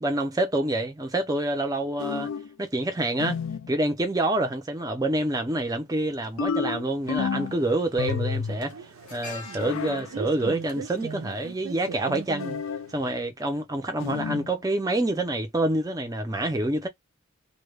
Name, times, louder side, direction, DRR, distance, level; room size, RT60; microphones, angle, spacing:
voice 1, 0.0-2.3 2.6-3.4 3.7-12.6 12.9-16.9, right 1 dB, 15° right, 0.5 m, -27 dB
sound 1, 2.0-2.5 3.2-3.7 6.4-7.6 8.0-8.6 9.6-10.1 12.4-12.9 14.0-14.5, left 6 dB, 60° left, 0.3 m, -30 dB
sound 2, 6.1-6.2 7.4-7.7 7.9-12.2 12.5-12.7, left 3 dB, 85° left, 0.9 m, -46 dB
sound 3, 7.0-13.1, right 5 dB, 70° right, 0.5 m, -41 dB
2.2 x 2.2 x 3.1 m
head